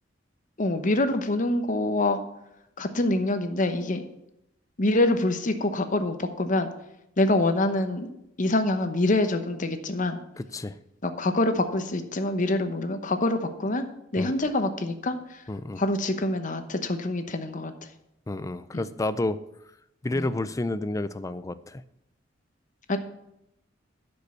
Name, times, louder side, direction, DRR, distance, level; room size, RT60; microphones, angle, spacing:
voice 1, 0.6-2.2 2.8-4.0 4.8-6.7 7.2-8.1 8.4-10.2 11.0-13.8 14.1-15.4 15.8-17.9 18.7-18.9 20.1-20.3 22.9-23.0, left 2 dB, 45° left, 9 dB, 0.9 m, -25 dB
voice 2, 10.4-10.7 14.2-14.3 15.5-15.8 18.3-19.4 20.0-21.8, left 2 dB, 15° left, 14 dB, 0.4 m, -30 dB
10.5 x 5.4 x 6.8 m, 0.83 s
head